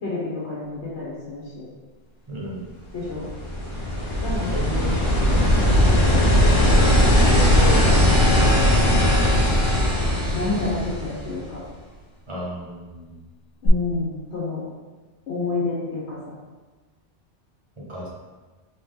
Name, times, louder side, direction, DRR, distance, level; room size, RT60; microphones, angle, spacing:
voice 1, 0.0-1.7 2.9-3.3 4.2-5.0 5.3-6.7 7.1-8.5 9.1-9.5 10.3-11.6 13.6-14.6 15.3-16.3, left 3 dB, 70° left, -7 dB, 1.2 m, -30 dB
voice 2, 2.3-2.7 4.5-4.9 12.3-13.2 17.9-18.1, right 1 dB, 30° right, -5 dB, 0.9 m, -34 dB
sound 1, 3.0-11.5 13.7-13.8, equal, 30° left, 0.7 m, -18 dB
3.8 x 2.8 x 3.7 m, 1.3 s
omnidirectional pair, 1.2 m